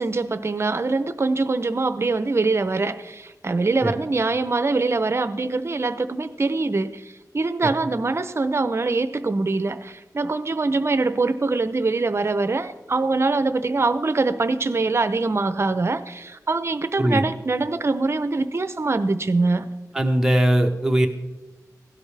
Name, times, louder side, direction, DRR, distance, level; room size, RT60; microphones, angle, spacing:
voice 1, 0.0-19.7, right 3 dB, 40° right, 12 dB, 0.7 m, -23 dB
voice 2, 19.9-21.1, right 1 dB, 10° right, 3 dB, 1.1 m, -20 dB
16.5 x 12.0 x 3.4 m, 1.1 s
wide cardioid pair, 100°, 7 cm